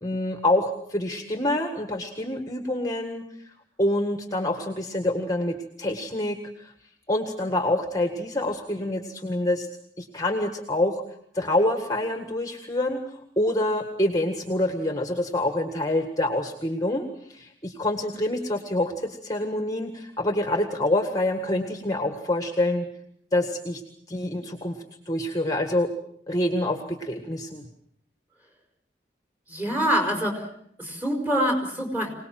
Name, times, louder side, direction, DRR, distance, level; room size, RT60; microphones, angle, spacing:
voice 1, 0.0-3.5 3.8-6.7 7.1-9.7 10.0-11.0 11.3-22.9 23.3-23.8 24.1-25.9 26.3-27.6, left 1 dB, 20° left, 5 dB, 1.8 m, -26 dB
voice 2, 29.5-30.5 30.8-32.1, equal, 10° right, 2 dB, 5.2 m, -25 dB
25.5 x 19.0 x 7.7 m, 0.67 s
head